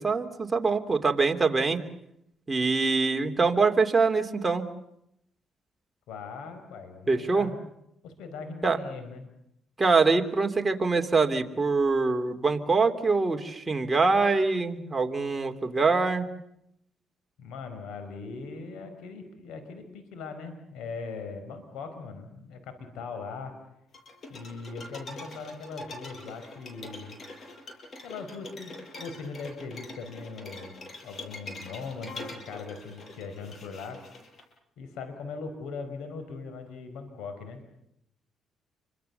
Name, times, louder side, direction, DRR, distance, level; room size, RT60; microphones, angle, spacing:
voice 1, 0.0-1.8 2.5-4.7 7.1-7.5 8.6-8.8 9.8-16.3, right 4 dB, 20° right, 4 dB, 3.0 m, -24 dB
voice 2, 6.1-7.6 8.0-9.3 17.4-23.5 24.3-27.2 28.0-30.8 31.0-34.0 34.8-37.6, left 4 dB, 90° left, 8 dB, 4.7 m, -40 dB
sound 1, 23.9-34.4, left 2 dB, 45° left, 7.3 m, -44 dB
29.0 x 24.5 x 7.0 m, 0.78 s
cardioid pair, 90°, 0 cm